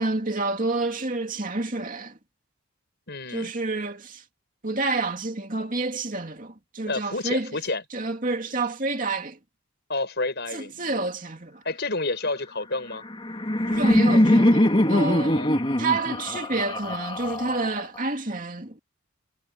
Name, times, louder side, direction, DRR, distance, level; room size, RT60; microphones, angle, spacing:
voice 1, 0.0-2.2 3.3-4.2 4.6-7.5 7.9-9.4 10.5-11.6 13.7-15.4 15.8-18.8, right 3 dB, 40° right, 2.6 m, -29 dB
voice 2, 3.1-3.5 6.9-7.8 9.9-10.9 11.6-13.0 15.2-15.6, left 2 dB, 50° left, 7.0 m, -30 dB
Laughter, 12.9-18.0, left 1 dB, 25° left, 2.3 m, -22 dB
head